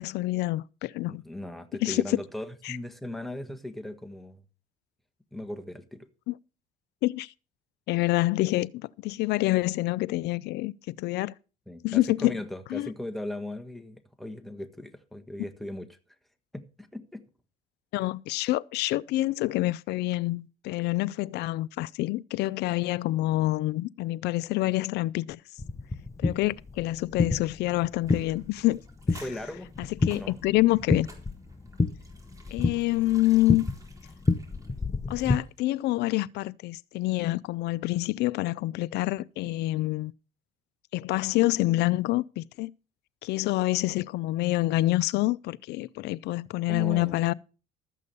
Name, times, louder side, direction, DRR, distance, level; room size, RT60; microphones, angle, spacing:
voice 1, 0.0-1.2 1.8-2.0 2.7-2.8 6.3-6.4 7.0-7.3 7.9-11.3 11.8-12.3 12.7-12.9 17.9-25.4 26.2-28.8 29.1-29.2 29.8-31.1 32.5-33.6 35.1-40.1 40.9-42.7 43.2-47.3, left 18 dB, 80° left, 0.5 m, -27 dB
voice 2, 1.0-4.4 5.3-6.1 11.7-16.0 16.5-17.2 29.2-29.7 30.1-30.4 46.7-47.2, left 1 dB, ahead, 1.5 m, -38 dB
sound 1, 25.6-35.4, left 3 dB, 15° left, 0.9 m, -30 dB
sound 2, 28.0-35.6 35.9-36.0, right 2 dB, 20° right, 3.9 m, -54 dB
13.0 x 8.3 x 5.4 m
cardioid pair, 110°, 17 cm